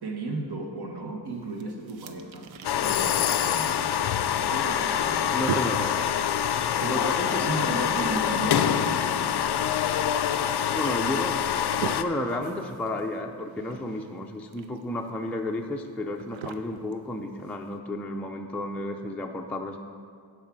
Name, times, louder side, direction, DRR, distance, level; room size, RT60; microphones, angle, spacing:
voice 1, 0.0-2.5 2.8-4.0 4.4-5.4 6.8-7.1 7.4-9.4, right 2 dB, 55° right, 2 dB, 1.2 m, -35 dB
sound 1, 1.3-17.8, right 6 dB, 80° right, 0.7 m, -41 dB
sound 2, 2.6-12.0, left 9 dB, 60° left, 0.5 m, -25 dB
voice 2, 5.3-5.9 6.9-7.6 10.7-11.6 11.9-19.8, left 1 dB, 5° left, 2 dB, 0.4 m, -32 dB
10.5 x 4.8 x 6.1 m, 2.1 s
wide cardioid pair, 100°, 46 cm